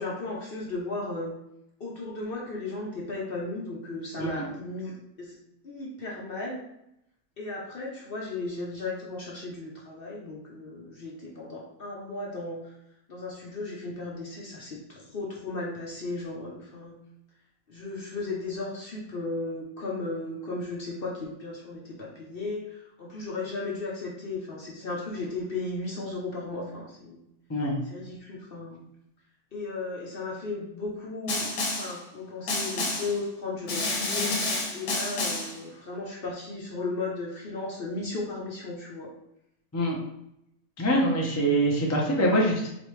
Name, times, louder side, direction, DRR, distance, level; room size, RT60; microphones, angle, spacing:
voice 1, 0.0-1.3 1.8-5.4 5.6-6.6 7.4-12.7 13.1-17.0 17.7-27.3 27.8-28.8 29.5-39.1, left 2 dB, 45° left, -3 dB, 0.8 m, -35 dB
Snare drum, 31.3-32.0 32.5-33.2 33.7-35.6, left 2 dB, 85° left, 1.5 m, -29 dB
voice 2, 40.8-42.7, right 1 dB, 15° left, -3 dB, 0.5 m, -24 dB
4.1 x 3.4 x 3.2 m, 0.80 s
omnidirectional pair, 1.6 m